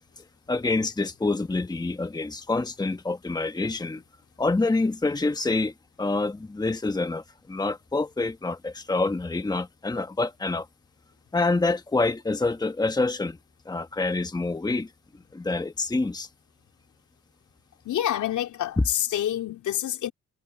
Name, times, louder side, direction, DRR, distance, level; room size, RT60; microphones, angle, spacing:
voice 1, 0.0-4.0 4.4-10.7 11.3-13.4 13.6-16.3, left 3 dB, 15° left, 1.3 m, -27 dB
voice 2, 17.8-20.1, left 11 dB, 75° left, 3.3 m, -27 dB
cardioid pair, 90°, 30 cm